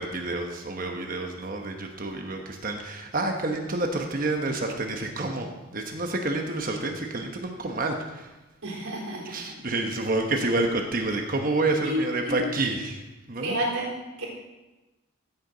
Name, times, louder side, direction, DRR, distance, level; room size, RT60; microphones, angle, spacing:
voice 1, 0.0-8.3 9.2-13.0 13.3-13.6, right 2 dB, 40° right, 3 dB, 1.1 m, -29 dB
voice 2, 8.6-9.3 11.8-12.5 13.4-14.3, equal, 85° right, -4 dB, 4.1 m, -30 dB
15.5 x 8.5 x 3.9 m, 1.1 s
head